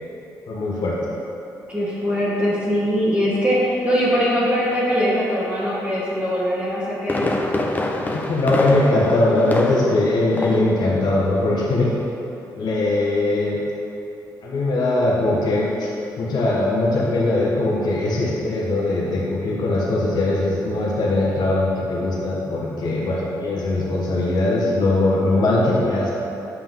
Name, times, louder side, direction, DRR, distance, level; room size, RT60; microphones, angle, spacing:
voice 1, 0.5-1.0 8.3-11.9 12.5-13.6 14.4-15.9 16.2-26.1, left 2 dB, 65° left, -5 dB, 1.2 m, -20 dB
voice 2, 1.7-7.5, equal, 20° right, -9 dB, 1.4 m, -21 dB
Fireworks, 6.8-10.1 10.4-10.7 11.1-11.2, left 2 dB, 25° left, 0.7 m, -25 dB
7.6 x 5.4 x 3.7 m, 2.9 s
cardioid pair, 85°, 8 cm